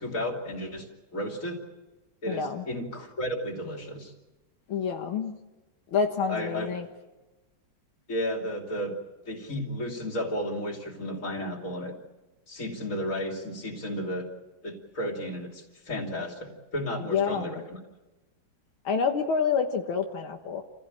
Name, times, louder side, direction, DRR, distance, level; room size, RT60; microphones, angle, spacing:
voice 1, 0.0-1.6 2.2-4.1 6.3-6.7 8.1-8.9 9.2-11.9 12.5-14.3 14.6-17.8, equal, 40° left, 2 dB, 3.3 m, -33 dB
voice 2, 2.3-2.6 4.7-5.3 5.9-6.9 17.1-17.6 18.9-20.6, left 6 dB, 80° left, 3 dB, 2.2 m, -28 dB
28.5 x 16.0 x 8.9 m, 1.1 s
omnidirectional pair, 2.2 m